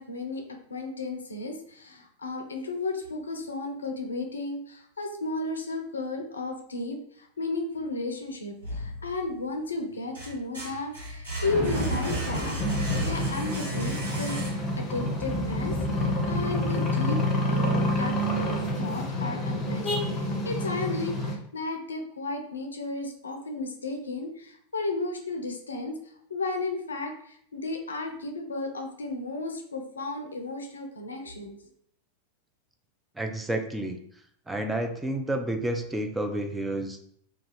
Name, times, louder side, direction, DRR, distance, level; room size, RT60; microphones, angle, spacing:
voice 1, 0.0-14.4 14.8-17.2 17.5-26.0 26.3-31.6, left 3 dB, 75° left, 4 dB, 0.4 m, -34 dB
sound 1, 8.6-9.5 9.9-14.9, right 1 dB, 80° right, 1.1 m, -35 dB
sound 2, 11.4-16.8, right 1 dB, 35° right, 1.2 m, -35 dB
sound 3, 12.6-21.3, left 1 dB, 25° left, 0.6 m, -28 dB
voice 2, 33.2-34.0 34.5-37.0, right 1 dB, 5° right, 4 dB, 0.3 m, -30 dB
2.3 x 2.3 x 3.2 m, 0.65 s
figure-of-eight pair, 90°, 0 cm